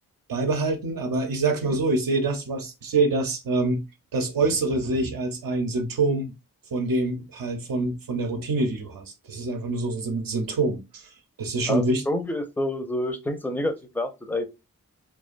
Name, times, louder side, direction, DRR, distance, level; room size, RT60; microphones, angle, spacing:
voice 1, 0.3-3.8 4.1-6.3 6.7-11.0 11.4-12.0, right 2 dB, 70° right, 0.6 m, -25 dB
voice 2, 11.7-14.5, left 1 dB, 5° left, 0.5 m, -28 dB
2.4 x 2.2 x 2.4 m
cardioid pair, 45°, 36 cm